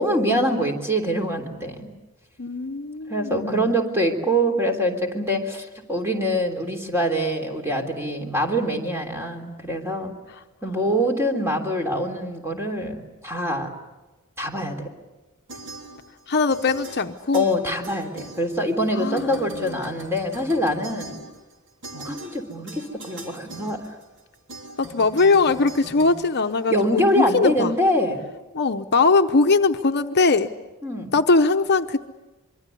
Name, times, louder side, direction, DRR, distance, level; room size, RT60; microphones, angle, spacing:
voice 1, 0.0-1.9 3.1-10.1 10.6-13.7 14.4-14.9 17.3-21.1 21.9-23.9 26.7-28.2 30.8-31.1, equal, 10° right, 4 dB, 3.3 m, -24 dB
voice 2, 2.4-3.8 16.3-17.5 18.9-19.9 24.8-27.7 28.5-30.5 31.1-32.0, left 3 dB, 50° left, 7 dB, 0.8 m, -21 dB
sound 1, 15.5-16.2 16.5-18.9 19.1-27.0, right 2 dB, 60° right, 3.5 m, -41 dB
25.0 x 23.5 x 8.4 m, 1.1 s
head